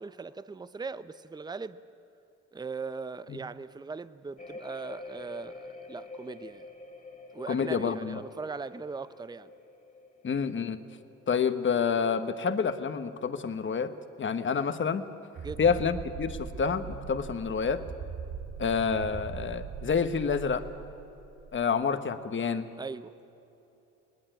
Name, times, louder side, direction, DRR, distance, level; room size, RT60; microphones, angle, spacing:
voice 1, 0.0-1.8 2.5-6.7 7.3-9.5 15.4-15.7 22.8-23.1, right 4 dB, 15° right, 14 dB, 0.6 m, -39 dB
sound 1, 4.4-13.0 13.3-13.8, left 3 dB, 25° left, 1.9 m, -48 dB
voice 2, 7.5-8.2 10.2-10.8 11.3-13.9 14.2-15.0 15.6-17.8 18.6-20.6 21.5-22.7, left 6 dB, 40° left, 10 dB, 1.3 m, -28 dB
sound 2, 15.4-21.6, right 6 dB, 65° right, 1.6 m, -41 dB
20.5 x 19.0 x 9.1 m, 2.9 s
cardioid pair, 90°, 30 cm